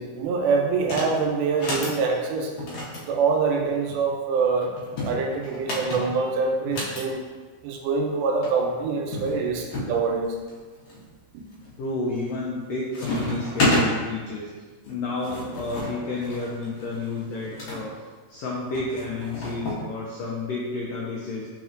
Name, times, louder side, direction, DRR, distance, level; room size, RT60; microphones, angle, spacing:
voice 1, 0.0-2.5 3.0-4.7 5.0-7.2 7.6-10.4 11.3-11.4, right 4 dB, 85° right, 1 dB, 2.1 m, -25 dB
sound 1, 0.8-1.1 1.5-2.0 2.6-4.0 4.8-7.0 8.1-8.2 8.4-8.5 9.1-9.9 10.5-11.0 11.5-11.9 12.2-12.6 12.9-13.9 14.8-17.8 18.7-19.8, left 1 dB, 65° left, 1.9 m, -30 dB
voice 2, 11.8-17.9 18.3-21.5, left 3 dB, 90° left, -4 dB, 1.4 m, -31 dB
4.2 x 4.1 x 2.5 m, 1.4 s
omnidirectional pair, 3.6 m